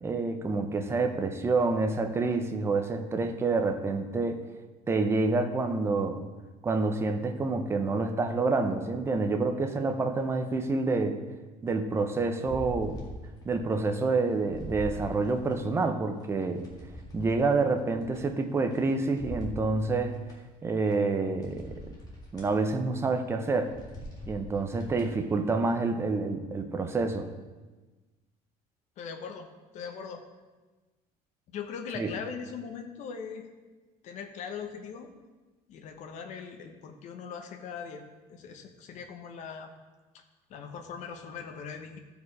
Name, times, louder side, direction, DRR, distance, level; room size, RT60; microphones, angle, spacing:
voice 1, 0.0-4.4 4.9-6.2 6.6-11.2 11.6-13.0 13.4-16.6 17.1-20.2 20.6-21.7 22.3-23.7 24.3-27.3 32.0-32.1, right 3 dB, 15° right, 6 dB, 0.7 m, -28 dB
sound 1, 12.4-13.6 14.0-15.7 16.2-18.8 19.2-20.4 20.9-21.0 21.4-22.5 23.0-23.2 23.5-25.2 25.7-25.8, equal, 25° left, 2.0 m, -43 dB
voice 2, 29.0-29.5 29.7-30.2 31.5-33.5 34.0-35.1 35.7-38.0 38.3-39.7 40.1-40.2 40.5-42.0, left 6 dB, 50° left, 5 dB, 1.1 m, -40 dB
14.5 x 5.1 x 4.8 m, 1.2 s
cardioid pair, 165°, 16 cm